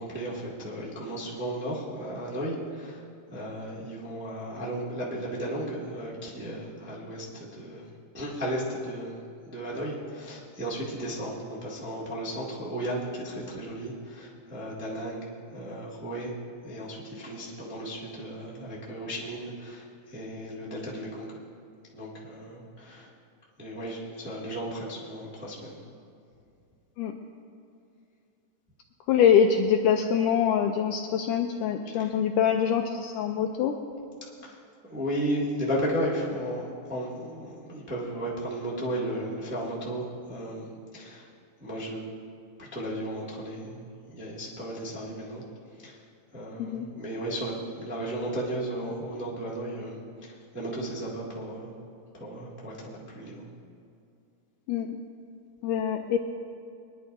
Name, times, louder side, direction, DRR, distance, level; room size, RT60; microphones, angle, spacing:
voice 1, 0.0-3.0 3.3-7.9 8.1-9.1 9.4-16.3 16.6-21.3 21.9-23.1 23.6-25.8 32.0-32.1 34.5-34.6 34.8-41.3 41.6-42.0 42.6-43.9 44.1-45.4 45.8-46.0 46.3-51.7 52.1-53.4, right 1 dB, 5° right, -7 dB, 1.0 m, -34 dB
voice 2, 29.1-33.7 46.6-46.9 54.7-54.9 55.6-56.2, left 8 dB, 80° left, 4 dB, 1.9 m, -24 dB
22.5 x 11.0 x 2.6 m, 2.5 s
omnidirectional pair, 4.1 m